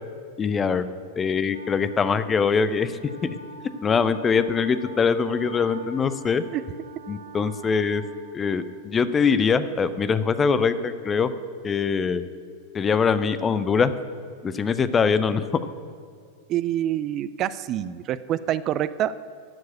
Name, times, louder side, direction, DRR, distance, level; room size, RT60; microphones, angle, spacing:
voice 1, 0.4-0.8 1.2-3.0 3.8-6.4 7.1-8.0 8.3-11.3 11.6-12.3 12.7-13.9 14.4-15.5, left 5 dB, 20° left, 13 dB, 0.5 m, -23 dB
Wind instrument woodwind instrument, 1.5-9.0, right 1 dB, 80° right, 1.3 m, -44 dB
voice 2, 16.5-19.2, right 11 dB, 35° right, 15 dB, 0.4 m, -26 dB
13.5 x 4.7 x 8.4 m, 2.2 s
figure-of-eight pair, 90°, 0 cm